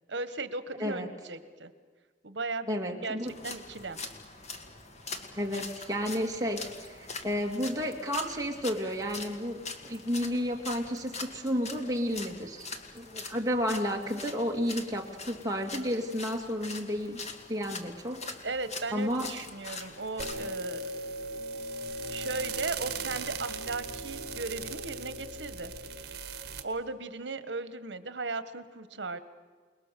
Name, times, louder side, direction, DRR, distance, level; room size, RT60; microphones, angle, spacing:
voice 1, 0.1-1.7 2.2-3.2 3.4-4.0 18.4-20.9 22.1-25.7 26.6-29.2, right 3 dB, 80° right, 12 dB, 1.3 m, -37 dB
voice 2, 2.7-3.3 5.4-12.7 12.9-17.2 17.5-18.3 18.9-19.3, equal, 20° right, 1 dB, 2.4 m, -32 dB
sound 1, 3.3-20.5, left 4 dB, 40° left, 2.0 m, -43 dB
sound 2, 20.2-26.6, right 3 dB, 60° right, 1.7 m, -38 dB
28.5 x 20.5 x 6.8 m, 1.5 s
head